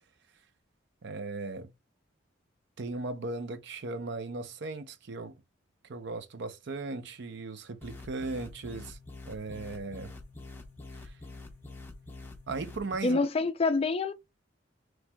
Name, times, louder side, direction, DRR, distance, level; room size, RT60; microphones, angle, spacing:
voice 1, 1.0-1.7 2.8-5.4 5.8-9.0 9.3-10.1 11.0-11.1 12.5-13.2, right 3 dB, 65° right, 0.6 m, -37 dB
sound 1, 7.8-13.0, left 3 dB, 10° left, 0.8 m, -46 dB
voice 2, 13.0-14.1, left 3 dB, 30° left, 0.4 m, -26 dB
5.9 x 3.1 x 2.2 m
head